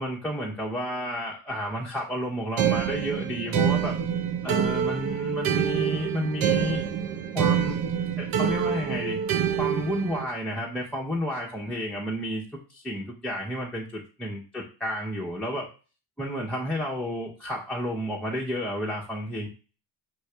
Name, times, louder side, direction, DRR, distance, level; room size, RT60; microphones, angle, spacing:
voice 1, 0.0-3.9 4.4-6.8 7.3-7.8 8.2-9.2 9.6-15.7 16.2-19.5, equal, ahead, -4 dB, 1.0 m, -31 dB
sound 1, 2.6-10.2, right 8 dB, 50° right, 0.8 m, -26 dB
5.9 x 2.6 x 3.3 m, 0.35 s
supercardioid pair, 80°, 44 cm